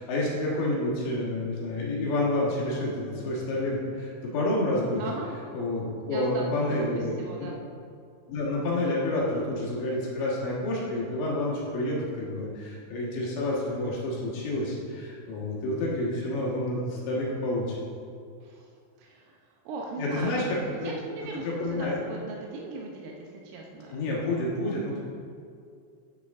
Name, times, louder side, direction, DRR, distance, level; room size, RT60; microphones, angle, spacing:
voice 1, 0.0-5.0 5.5-7.5 8.3-17.8 20.0-21.1 21.5-22.0 23.9-25.0, left 1 dB, 70° left, -4 dB, 3.5 m, -29 dB
voice 2, 5.0-5.3 6.1-7.6 18.4-20.5 20.8-23.9, right 3 dB, 80° right, -1 dB, 3.4 m, -39 dB
9.7 x 9.5 x 3.6 m, 2.3 s
omnidirectional pair, 5.9 m